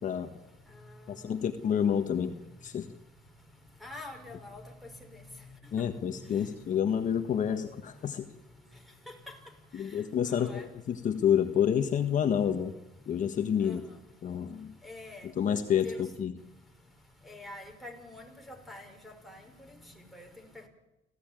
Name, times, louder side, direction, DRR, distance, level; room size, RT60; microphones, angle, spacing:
voice 1, 0.0-11.1 12.9-15.5 15.8-20.7, left 2 dB, ahead, 1 dB, 5.6 m, -49 dB
voice 2, 1.1-2.9 5.7-8.3 9.7-12.7 13.1-13.8 14.2-14.7 15.2-16.3, left 8 dB, 50° left, 6 dB, 1.5 m, -29 dB
27.0 x 16.0 x 9.1 m, 0.96 s
cardioid pair, 110°, 17 cm